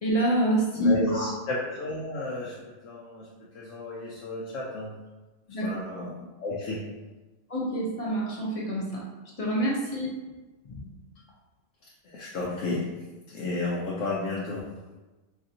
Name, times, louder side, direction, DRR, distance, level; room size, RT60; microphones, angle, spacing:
voice 1, 0.0-1.3 5.5-5.8 7.5-9.0 9.4-10.1 10.7-10.8, right 1 dB, 35° left, -4 dB, 0.7 m, -26 dB
voice 2, 0.7-3.3 3.5-5.0 5.6-6.9 11.8-12.9 13.3-14.7, left 2 dB, 70° left, -5 dB, 0.9 m, -32 dB
4.9 x 2.5 x 2.7 m, 1.1 s
omnidirectional pair, 1.4 m